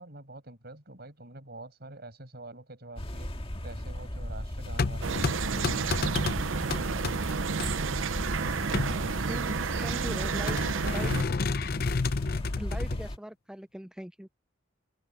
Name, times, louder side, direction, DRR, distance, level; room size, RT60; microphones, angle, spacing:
voice 1, 0.0-3.3 3.6-7.7 8.4-10.4, right 2 dB, 55° right, 7.1 m, -47 dB
sound 1, 3.0-13.2, equal, 30° left, 1.8 m, -36 dB
sound 2, 4.6-7.7 8.5-9.6 10.5-13.1, left 4 dB, 50° left, 0.6 m, -31 dB
sound 3, 5.0-11.2, right 5 dB, 85° right, 0.6 m, -31 dB
voice 2, 9.3-11.1 12.6-14.3, equal, 5° right, 0.4 m, -40 dB
open air
head